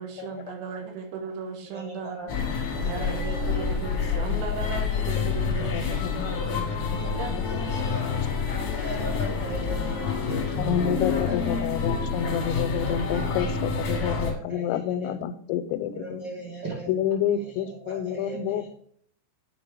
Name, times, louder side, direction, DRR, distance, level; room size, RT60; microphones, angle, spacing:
voice 1, 0.0-2.2 2.8-6.4 7.1-7.3, right 5 dB, 75° right, 4 dB, 3.1 m, -36 dB
voice 2, 1.6-3.4 4.6-4.7 5.1-5.2 6.4-7.1 7.4-8.1 8.5-10.6 10.9-12.5 12.8-13.0 13.8-15.2 15.9-16.9 17.3-18.7, right 2 dB, 45° right, -4 dB, 1.4 m, -40 dB
sound 1, 2.3-14.3, left 5 dB, 65° left, 1.6 m, -28 dB
voice 3, 5.7-6.3 6.5-6.6 6.9-7.0 10.6-16.2 16.9-18.7, left 9 dB, 90° left, 10 dB, 2.9 m, -29 dB
8.6 x 5.2 x 3.7 m, 0.65 s
omnidirectional pair, 5.2 m